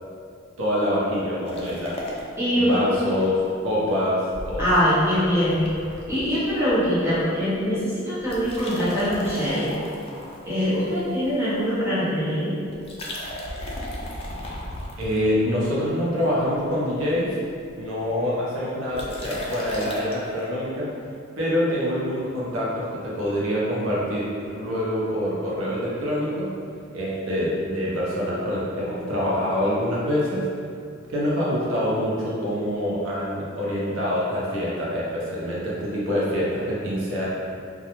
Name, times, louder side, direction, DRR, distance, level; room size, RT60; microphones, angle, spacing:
voice 1, 0.6-2.0 2.6-4.7 15.0-17.4 17.8-20.9 21.4-26.5 26.9-30.5 31.1-37.3, equal, 85° right, -6 dB, 0.6 m, -25 dB
sound 1, 1.5-3.3 3.6-3.7 4.3-7.2 7.5-7.8 8.2-11.5 12.7-15.7 16.2-16.7 17.0-17.1 17.3-17.4 17.6-17.9 18.9-20.3, left 1 dB, 30° left, 0.3 m, -35 dB
voice 2, 2.4-3.0 4.6-5.6 6.1-9.7 10.4-12.5, equal, 15° right, -12 dB, 0.8 m, -23 dB
2.3 x 2.2 x 2.9 m, 2.4 s
head